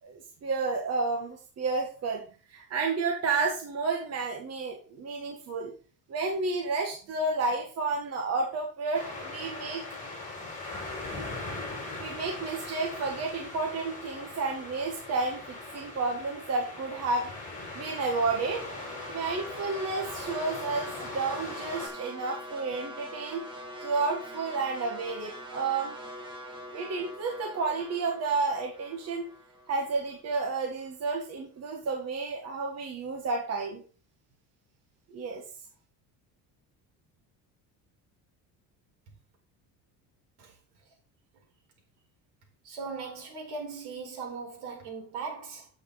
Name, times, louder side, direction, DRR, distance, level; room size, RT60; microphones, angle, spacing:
voice 1, 0.0-2.2 2.5-5.7 6.1-9.8 12.0-17.3 17.7-18.7 19.1-23.4 23.8-26.0 26.7-29.3 29.7-33.8 35.1-35.4, right 3 dB, 40° right, 1.8 m, -31 dB
sound 1, 8.9-21.9, left 2 dB, 20° left, 6.4 m, -40 dB
sound 2, 18.4-30.6, equal, 10° right, 3.4 m, -44 dB
voice 2, 42.6-45.7, right 4 dB, 75° right, 5.1 m, -39 dB
9.6 x 8.3 x 4.1 m
cardioid pair, 145°, 38 cm